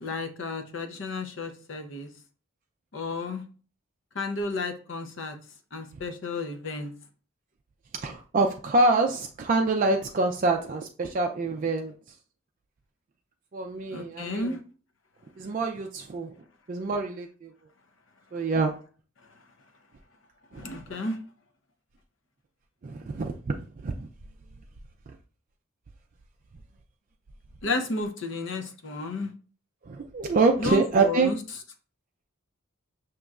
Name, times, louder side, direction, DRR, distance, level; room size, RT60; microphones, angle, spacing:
voice 1, 0.0-2.1 2.9-3.4 4.1-5.3 5.7-6.9 13.9-14.6 20.5-21.2 27.6-29.3 30.6-31.4, left 3 dB, 60° left, 6 dB, 0.7 m, -32 dB
voice 2, 8.0-11.9 13.5-14.5 15.4-16.3 16.7-17.5 18.3-18.7 20.5-20.7 22.8-23.6 23.8-24.1 29.9-31.3, right 3 dB, 40° right, 3 dB, 0.3 m, -26 dB
6.3 x 2.9 x 2.4 m, 0.39 s
head